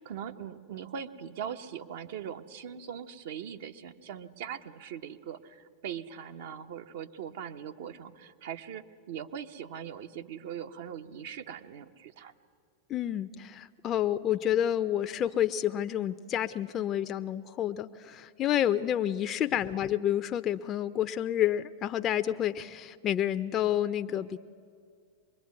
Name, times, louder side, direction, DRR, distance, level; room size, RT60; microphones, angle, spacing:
voice 1, 0.0-12.3 19.7-19.8, right 8 dB, 65° right, 7 dB, 1.1 m, -41 dB
voice 2, 12.9-24.4, left 11 dB, 35° left, 10 dB, 0.6 m, -29 dB
23.5 x 21.5 x 9.7 m, 2.2 s
hypercardioid pair, 95°, 0 cm